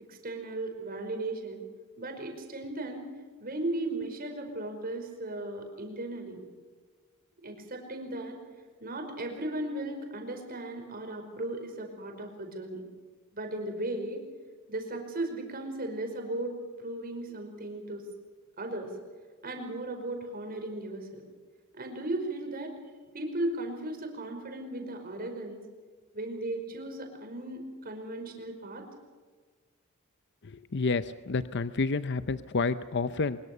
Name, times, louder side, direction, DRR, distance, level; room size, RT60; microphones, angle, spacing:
voice 1, 0.1-1.6 2.0-3.1 3.4-6.4 7.4-8.4 8.8-12.9 13.3-14.2 14.7-18.1 18.6-18.9 19.4-21.2 21.7-22.7 23.1-25.6 26.1-28.9, right 1 dB, 45° right, 4 dB, 5.2 m, -36 dB
voice 2, 30.4-33.4, left 4 dB, 55° left, 12 dB, 0.7 m, -29 dB
23.5 x 22.5 x 6.8 m, 1.5 s
head